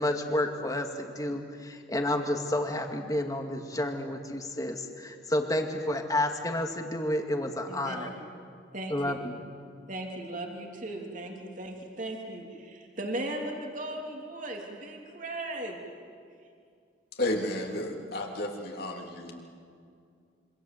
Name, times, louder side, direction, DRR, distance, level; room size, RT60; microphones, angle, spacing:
voice 1, 0.0-8.1 8.9-9.4, left 1 dB, 20° left, 4 dB, 2.2 m, -30 dB
voice 2, 7.7-8.1 8.7-9.1 9.9-15.8, right 1 dB, 45° right, 1 dB, 3.3 m, -37 dB
voice 3, 17.1-19.4, left 1 dB, 55° left, 1 dB, 3.4 m, -32 dB
27.0 x 25.0 x 8.0 m, 2.3 s
head